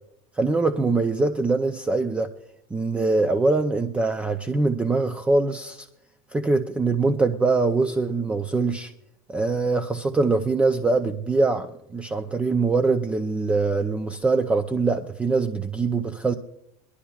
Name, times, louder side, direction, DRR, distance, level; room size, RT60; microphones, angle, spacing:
voice 1, 0.4-2.3 2.7-5.9 6.3-8.9 9.3-16.3, right 3 dB, 10° right, 6 dB, 0.4 m, -23 dB
22.5 x 11.5 x 2.3 m, 0.79 s
supercardioid pair, 155°, 15 cm